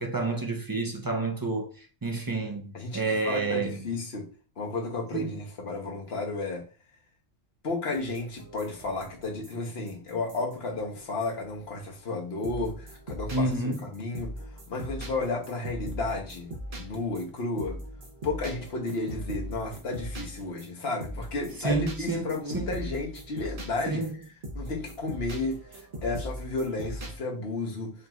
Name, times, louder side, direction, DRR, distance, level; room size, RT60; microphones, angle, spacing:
voice 1, 0.0-1.7 2.0-3.8 5.1-5.4 13.3-13.8 21.6-22.7 23.9-24.2, right 3 dB, 30° right, 0.4 m, -29 dB
voice 2, 2.7-4.3 4.6-6.7 7.6-13.5 13.8-14.3 14.7-17.8 18.2-24.0 24.5-27.9, left 3 dB, 75° left, 1.3 m, -33 dB
sound 1, 7.9-11.8 12.4-27.2, equal, 55° right, 1.1 m, -40 dB
5.2 x 2.9 x 2.4 m
omnidirectional pair, 1.1 m